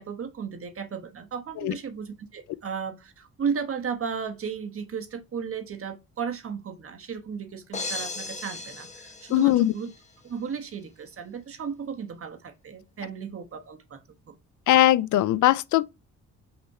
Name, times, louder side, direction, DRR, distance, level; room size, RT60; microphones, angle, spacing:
voice 1, 0.0-9.9 10.2-14.3, right 6 dB, 45° right, 1.4 m, -35 dB
sound 1, 7.7-10.0, left 3 dB, 25° left, 1.1 m, -37 dB
voice 2, 9.3-9.7 14.7-15.8, left 14 dB, 75° left, 0.5 m, -20 dB
5.9 x 3.2 x 5.5 m
cardioid pair, 90°, 30 cm